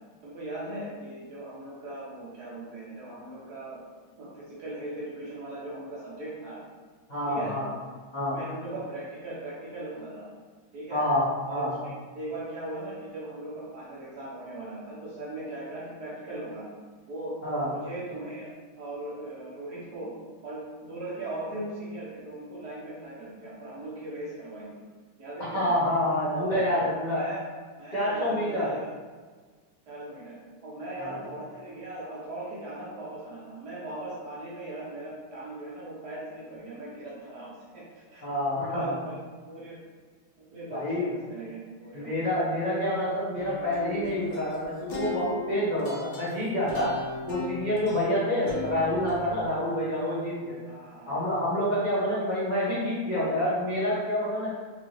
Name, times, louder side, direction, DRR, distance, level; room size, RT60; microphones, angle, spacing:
voice 1, 0.2-3.8 4.2-6.6 7.3-7.5 8.3-10.3 10.7-11.0 11.4-16.7 17.1-17.4 17.6-18.5 18.8-20.1 20.4-24.9 25.2-25.7 26.3-26.7 27.1-27.4 27.8-28.9 29.9-30.4 30.6-38.2 38.5-39.1 39.4-39.8 40.4-42.4 50.6-51.2, right 2 dB, 65° right, -6 dB, 1.0 m, -39 dB
voice 2, 7.1-7.7 8.1-8.4 10.9-11.7 17.4-17.7 25.5-27.2 27.9-28.7 31.0-31.2 38.2-39.0 40.7-41.1 41.9-47.0 47.3-50.6 51.1-54.6, left 1 dB, 60° left, -11 dB, 0.4 m, -27 dB
sound 1, 43.4-49.5, left 3 dB, 75° left, 1.6 m, -38 dB
4.5 x 2.5 x 3.1 m, 1.4 s
omnidirectional pair, 2.3 m